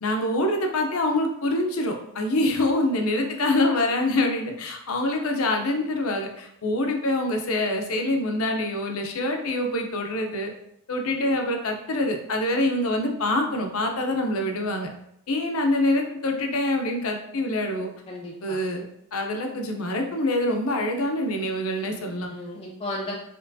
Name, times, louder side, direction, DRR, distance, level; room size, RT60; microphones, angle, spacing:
voice 1, 0.0-10.5 10.9-14.9 15.3-17.9 18.4-18.9 19.1-22.3, left 1 dB, 70° left, 3 dB, 0.7 m, -25 dB
voice 2, 18.1-18.6 21.9-23.2, left 1 dB, 25° left, -3 dB, 0.4 m, -35 dB
4.4 x 3.0 x 2.7 m, 0.74 s
head